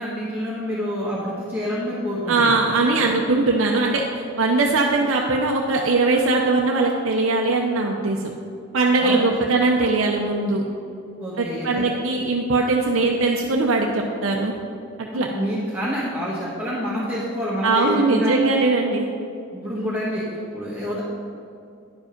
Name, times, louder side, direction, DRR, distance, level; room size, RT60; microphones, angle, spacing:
voice 1, 0.0-2.5 9.0-9.3 11.2-11.9 15.1-18.4 19.5-20.2 20.5-21.0, equal, 10° right, -9 dB, 1.3 m, -27 dB
voice 2, 2.3-8.3 8.7-10.6 11.4-14.5 15.1-15.3 17.6-19.1, right 3 dB, 65° right, 0 dB, 0.6 m, -20 dB
10.0 x 5.0 x 5.1 m, 2.5 s
head